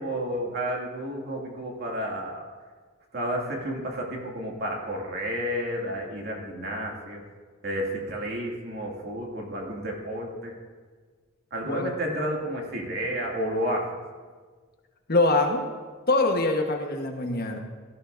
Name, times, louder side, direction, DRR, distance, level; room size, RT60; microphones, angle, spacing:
voice 1, 0.0-2.4 3.1-7.2 7.6-10.5 11.5-13.9, equal, 55° right, -1 dB, 2.4 m, -31 dB
voice 2, 15.1-15.7 16.1-17.6, left 2 dB, 50° left, 3 dB, 1.3 m, -24 dB
17.0 x 13.0 x 2.7 m, 1.5 s
head